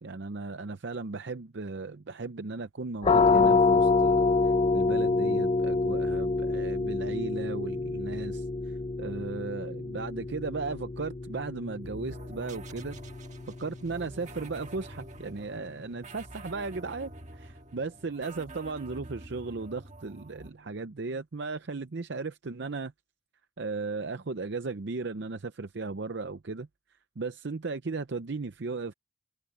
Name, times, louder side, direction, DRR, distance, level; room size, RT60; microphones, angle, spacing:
voice 1, 0.0-4.3 4.7-13.0 13.6-22.9 23.6-26.7 27.2-28.9, right 3 dB, 60° right, 0.6 m, -36 dB
sound 1, 3.0-14.5, left 3 dB, 30° left, 0.6 m, -27 dB
sound 2, 11.8-20.5, right 2 dB, 35° right, 1.6 m, -47 dB
open air
head